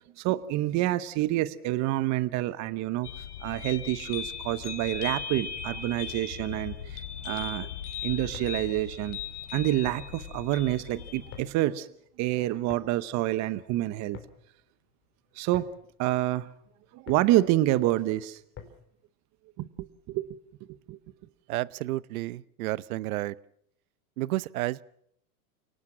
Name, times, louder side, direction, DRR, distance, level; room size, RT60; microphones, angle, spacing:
voice 1, 0.2-7.7 8.0-9.2 9.5-11.9 12.2-14.2 15.3-15.7 16.0-16.5 16.9-18.4 19.6-20.3 20.7-21.0, right 15 dB, 35° right, 15 dB, 1.0 m, -28 dB
sound 1, 3.0-11.4, left 8 dB, 85° left, 3.6 m, -38 dB
sound 2, 8.3-19.0, left 8 dB, 25° left, 3.9 m, -51 dB
voice 2, 21.5-23.4 24.2-24.8, right 17 dB, 65° right, 20 dB, 0.8 m, -31 dB
29.5 x 18.5 x 6.0 m, 0.69 s
hypercardioid pair, 120°, 46 cm